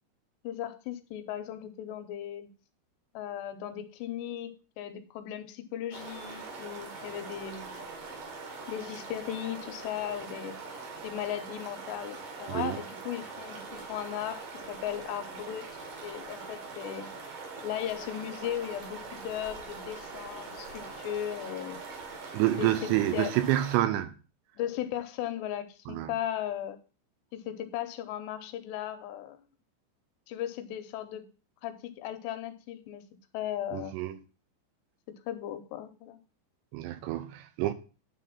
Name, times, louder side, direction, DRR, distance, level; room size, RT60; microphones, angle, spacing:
voice 1, 0.4-2.5 3.1-7.9 8.7-10.6 11.0-15.7 16.0-17.1 17.6-21.8 22.6-23.4 24.6-26.8 27.3-29.4 30.3-31.3 31.6-33.0 33.3-34.0 35.1-36.2, left 11 dB, 80° left, 2.7 m, -37 dB
sound 1, 5.9-23.8, right 4 dB, 55° right, 3.2 m, -43 dB
voice 2, 22.3-24.1 25.9-26.1 33.7-34.2 36.7-37.7, right 14 dB, 80° right, 2.6 m, -28 dB
10.0 x 3.7 x 7.2 m
omnidirectional pair, 5.3 m